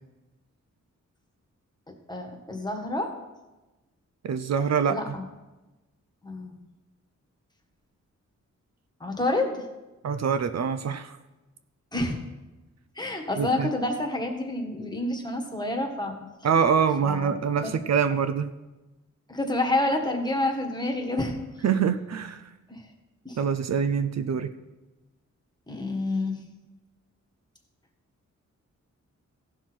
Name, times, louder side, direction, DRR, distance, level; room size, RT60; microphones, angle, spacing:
voice 1, 2.1-3.1 4.9-5.2 6.2-6.6 9.0-9.6 11.9-12.2 13.0-16.2 17.0-17.3 17.6-17.7 19.3-21.4 22.7-22.8 23.2-23.4 25.7-26.4, left 2 dB, 15° left, 3 dB, 1.5 m, -28 dB
voice 2, 4.2-5.0 10.0-11.2 13.4-13.7 16.4-18.5 21.6-22.4 23.4-24.5, right 7 dB, 60° right, 10 dB, 0.5 m, -25 dB
15.5 x 6.1 x 4.5 m, 1.1 s
wide cardioid pair, 110°, 30 cm